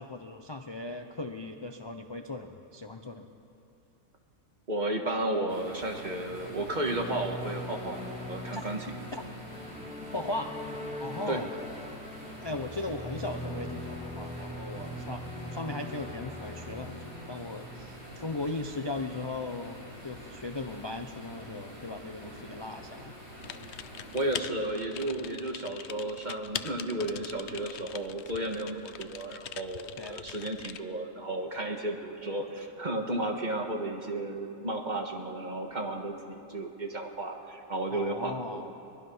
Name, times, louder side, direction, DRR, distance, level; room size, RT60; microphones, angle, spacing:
voice 1, 0.0-3.3 8.5-8.6 9.1-9.2 10.1-10.5 11.0-11.5 12.4-23.1 30.0-30.2 37.9-38.7, left 2 dB, 30° left, 5 dB, 0.4 m, -38 dB
voice 2, 4.7-8.9 11.3-11.4 24.1-38.6, right 1 dB, 30° right, 2 dB, 1.7 m, -33 dB
sound 1, 5.5-24.4, equal, 60° right, 6.8 m, -47 dB
sound 2, 6.2-18.7, equal, 5° right, 0.9 m, -42 dB
Typing, 23.4-30.8, left 10 dB, 60° left, 0.7 m, -42 dB
22.0 x 22.0 x 5.6 m, 2.8 s
omnidirectional pair, 1.6 m